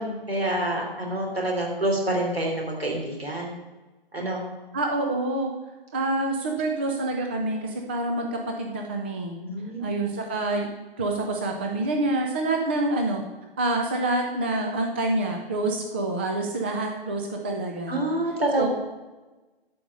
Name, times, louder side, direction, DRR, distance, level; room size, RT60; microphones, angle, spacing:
voice 1, 0.0-3.6 4.1-4.5 9.4-9.9 17.9-18.7, right 1 dB, 75° right, 0 dB, 3.5 m, -27 dB
voice 2, 4.7-5.5 5.9-9.3 9.8-10.7 11.0-13.2 13.6-18.0 18.6-18.7, right 2 dB, 10° right, 2 dB, 0.4 m, -27 dB
12.0 x 5.0 x 6.6 m, 1.1 s
figure-of-eight pair, 130°, 31 cm